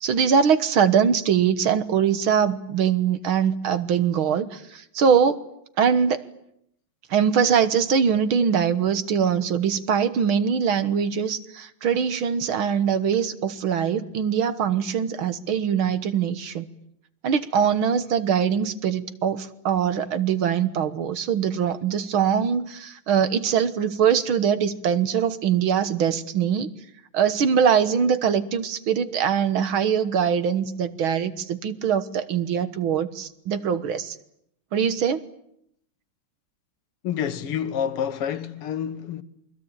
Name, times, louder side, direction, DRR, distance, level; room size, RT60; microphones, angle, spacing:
voice 1, 0.0-5.4 5.8-6.2 7.1-16.7 17.2-26.7 27.1-34.2 34.7-35.2, right 7 dB, 70° right, 2.1 m, -22 dB
voice 2, 37.0-39.2, left 8 dB, 85° left, 2.2 m, -28 dB
28.0 x 21.5 x 8.9 m
omnidirectional pair, 2.4 m